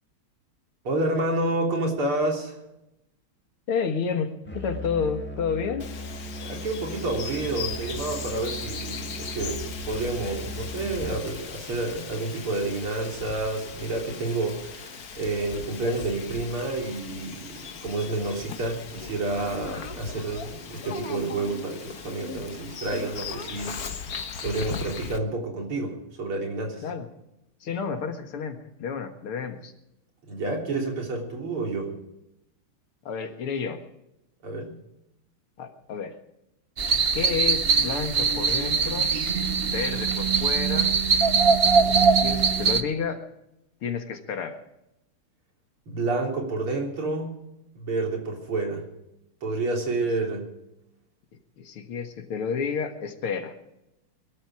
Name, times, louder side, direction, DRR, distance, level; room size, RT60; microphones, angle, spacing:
voice 1, 0.8-2.6 6.4-23.8 24.4-26.8 30.3-31.9 34.4-34.8 45.9-47.3 47.7-48.9 49.4-50.5, right 2 dB, 75° right, 1 dB, 4.3 m, -29 dB
voice 2, 3.7-5.9 26.8-27.1 27.6-29.7 33.1-33.8 35.6-36.2 37.1-39.1 39.7-41.0 41.8-43.2 43.8-44.6 51.6-53.6, left 6 dB, 80° left, 6 dB, 2.6 m, -30 dB
Musical instrument, 4.5-11.4, right 1 dB, 5° left, 0.8 m, -38 dB
Bird vocalization bird call bird song, 5.8-25.2, left 5 dB, 50° left, 1.5 m, -38 dB
sound 1, 36.8-42.8, right 5 dB, 45° right, 0.8 m, -22 dB
22.5 x 12.5 x 4.9 m, 0.86 s
omnidirectional pair, 2.4 m